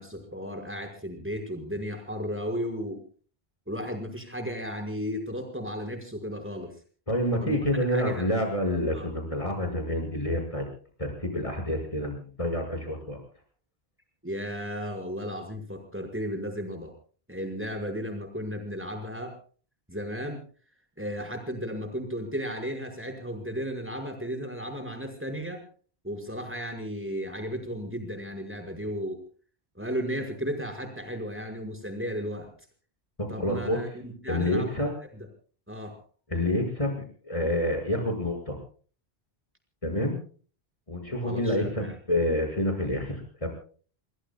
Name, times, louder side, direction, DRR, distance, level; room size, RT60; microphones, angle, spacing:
voice 1, 0.0-3.0 3.7-6.7 7.4-8.2 8.9-9.1 14.2-16.9 17.3-19.4 19.9-20.4 21.0-25.6 26.0-29.2 29.8-32.5 33.3-35.3 35.7-35.9 41.2-41.9, equal, 10° right, 4 dB, 5.6 m, -34 dB
voice 2, 7.1-10.6 11.0-13.2 33.2-33.8 34.3-34.9 36.3-38.5 39.8-40.2 40.9-43.5, left 1 dB, 30° left, 4 dB, 6.2 m, -28 dB
30.0 x 20.0 x 2.3 m, 0.42 s
omnidirectional pair, 1.1 m